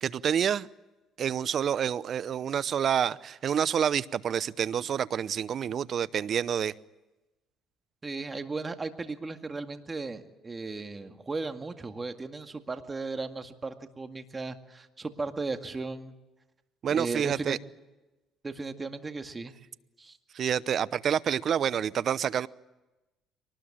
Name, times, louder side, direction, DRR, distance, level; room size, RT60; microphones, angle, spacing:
voice 1, 0.0-0.7 1.2-6.7 16.8-17.6 20.3-22.5, right 8 dB, 50° right, 18 dB, 0.8 m, -28 dB
voice 2, 8.0-16.1 16.9-17.6 18.4-19.5 20.0-20.2, right 3 dB, 25° right, 7 dB, 2.1 m, -36 dB
24.0 x 19.5 x 8.8 m, 1.0 s
cardioid pair, 90°, 0 cm